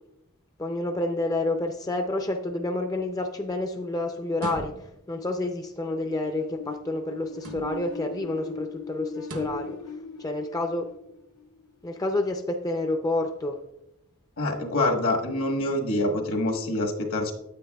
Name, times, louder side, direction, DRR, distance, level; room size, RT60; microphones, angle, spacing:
voice 1, 0.6-9.8 10.2-10.9 11.8-13.6, left 2 dB, 15° left, 5 dB, 0.4 m, -29 dB
sound 1, 4.3-5.1 7.3-8.0 9.2-9.7, right 2 dB, 70° right, 1.0 m, -39 dB
sound 2, 6.1-11.7, left 3 dB, 90° left, 0.5 m, -39 dB
voice 2, 14.4-17.3, left 2 dB, 70° left, 3 dB, 1.3 m, -26 dB
9.7 x 8.0 x 2.3 m, 0.84 s
head